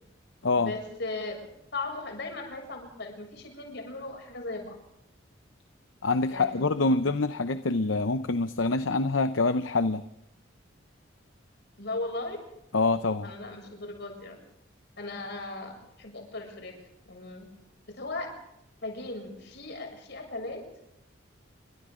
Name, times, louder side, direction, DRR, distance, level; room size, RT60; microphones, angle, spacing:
voice 1, 0.6-1.5 1.7-4.8 6.3-7.1 11.8-12.4 13.2-14.4 15.0-16.8 17.1-17.5 18.0-18.3 18.8-20.6, left 2 dB, 60° left, 3 dB, 7.0 m, -37 dB
voice 2, 6.0-10.0 12.7-13.3, left 3 dB, 75° left, 11 dB, 0.8 m, -26 dB
29.0 x 24.5 x 3.8 m, 0.80 s
head